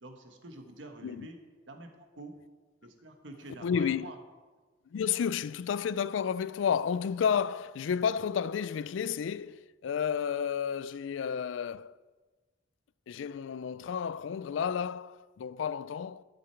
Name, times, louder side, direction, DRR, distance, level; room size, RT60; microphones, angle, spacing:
voice 1, 0.0-1.4 1.7-2.3 2.8-4.2, right 2 dB, 80° right, 1.4 m, -47 dB
voice 2, 3.6-4.1 4.9-12.0 13.1-16.2, left 7 dB, 90° left, 0.4 m, -31 dB
12.0 x 7.9 x 4.5 m
head